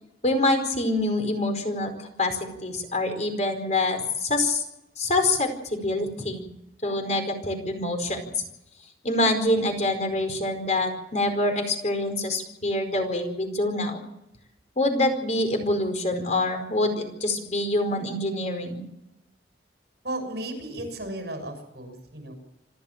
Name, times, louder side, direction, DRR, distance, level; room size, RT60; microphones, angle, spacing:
voice 1, 0.2-4.6 5.0-6.4 6.8-8.4 9.0-14.0 14.8-18.8, left 2 dB, 40° left, 6 dB, 4.8 m, -26 dB
voice 2, 20.0-22.3, right 1 dB, 70° right, 6 dB, 6.7 m, -34 dB
27.5 x 13.0 x 7.4 m, 0.87 s
head